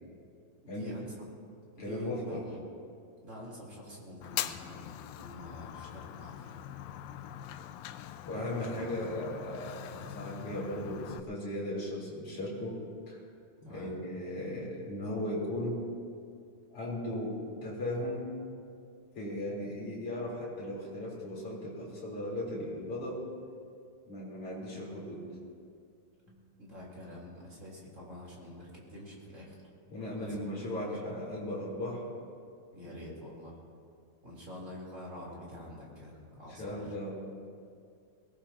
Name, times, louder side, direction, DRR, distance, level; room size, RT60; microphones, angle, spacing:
voice 1, 0.6-1.1 1.7-2.6 3.2-6.6 13.6-14.0 26.6-29.6 30.2-30.4 30.8-31.0 32.7-33.5 34.2-37.1, left 1 dB, 20° right, -4 dB, 3.7 m, -47 dB
voice 2, 1.8-2.4 8.2-13.2 13.6-15.8 16.7-18.3 19.1-23.3 24.1-25.3 26.3-26.4 29.9-32.1 32.8-33.1 36.6-37.1, left 1 dB, 40° left, -5 dB, 4.6 m, -37 dB
Fire, 4.2-11.2, left 11 dB, 85° left, 2.4 m, -42 dB
22.0 x 19.0 x 2.9 m, 2.4 s
omnidirectional pair, 4.1 m